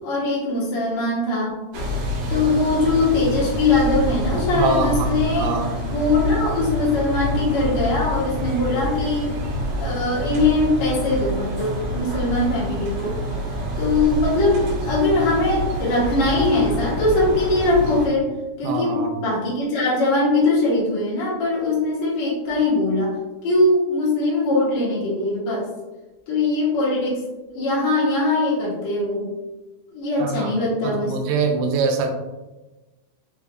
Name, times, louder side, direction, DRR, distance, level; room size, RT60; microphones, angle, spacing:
voice 1, 0.0-1.5 2.3-5.5 5.8-9.3 9.8-13.1 13.8-18.3 18.6-23.1 23.4-25.7 26.3-27.2 27.5-29.3 29.9-31.2, left 2 dB, 70° left, -6 dB, 1.7 m, -21 dB
sound 1, 1.7-18.1, equal, 55° right, 1.6 m, -27 dB
voice 2, 4.5-5.1 5.4-5.7 18.6-19.1 30.2-30.5 30.8-32.1, right 4 dB, 85° right, 3 dB, 2.5 m, -23 dB
5.8 x 3.1 x 2.4 m, 1.1 s
omnidirectional pair, 4.5 m